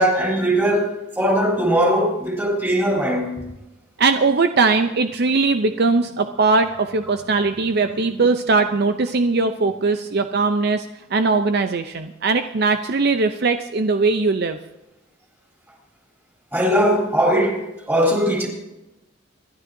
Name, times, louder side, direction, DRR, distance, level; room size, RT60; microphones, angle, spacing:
voice 1, 0.0-3.4 16.5-18.5, equal, 10° right, 3.7 m, -20 dB
voice 2, 4.0-10.9 11.1-14.6, right 3 dB, 55° right, 0.6 m, -20 dB
26.5 x 12.0 x 2.7 m
head